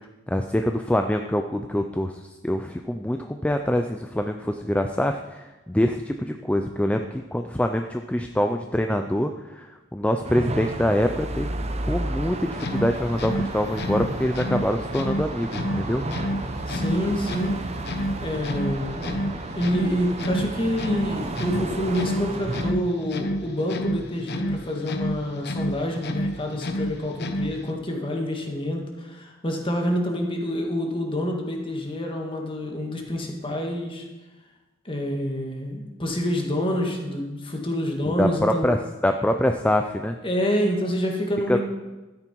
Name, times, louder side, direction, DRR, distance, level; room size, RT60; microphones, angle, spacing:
voice 1, 0.3-2.1 2.4-9.7 9.9-11.5 11.9-16.0 38.0-38.8 39.0-40.2 41.5-41.6, left 1 dB, 5° left, 5 dB, 0.4 m, -25 dB
sound 1, 10.2-22.7, right 2 dB, 35° right, 0.8 m, -32 dB
sound 2, 12.5-27.8, equal, 55° left, 0.9 m, -30 dB
voice 2, 16.7-17.6 18.2-19.3 19.6-34.1 34.9-38.7 40.2-41.6, equal, 25° left, 1 dB, 1.9 m, -27 dB
13.0 x 9.7 x 4.6 m, 1.1 s
head